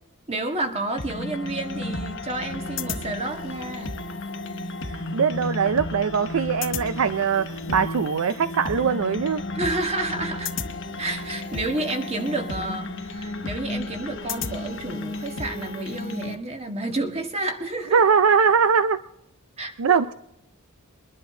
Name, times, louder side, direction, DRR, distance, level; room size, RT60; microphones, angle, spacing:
voice 1, 0.3-4.0 9.5-10.5 11.0-18.0 19.6-20.0, right 2 dB, 30° right, 5 dB, 1.6 m, -30 dB
sound 1, 1.0-16.4, left 2 dB, 60° left, 1.1 m, -33 dB
voice 2, 5.1-9.4 17.9-19.0 19.8-20.1, right 6 dB, 70° right, 13 dB, 0.5 m, -21 dB
22.5 x 11.0 x 3.8 m, 0.81 s
head